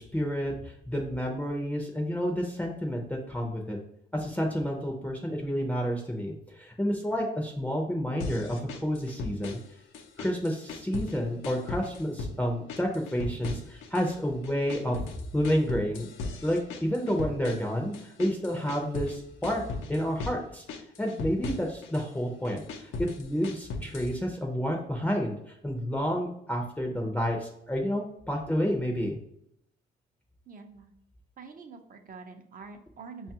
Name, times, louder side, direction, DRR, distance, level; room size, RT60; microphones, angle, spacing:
voice 1, 0.0-3.8 4.1-9.6 10.2-15.0 15.3-16.1 16.4-19.6 19.9-20.6 21.0-29.2, equal, 5° left, 1 dB, 0.5 m, -30 dB
sound 1, 8.2-9.7 9.9-11.2 11.4-12.4 12.7-14.2 14.4-19.2 19.4-20.4 20.7-22.1 22.4-24.1, left 3 dB, 80° left, 0.6 m, -37 dB
voice 2, 30.5-30.9 31.4-33.3, right 4 dB, 45° right, 5 dB, 0.6 m, -46 dB
5.1 x 2.3 x 2.8 m, 0.75 s
cardioid pair, 90°, 20 cm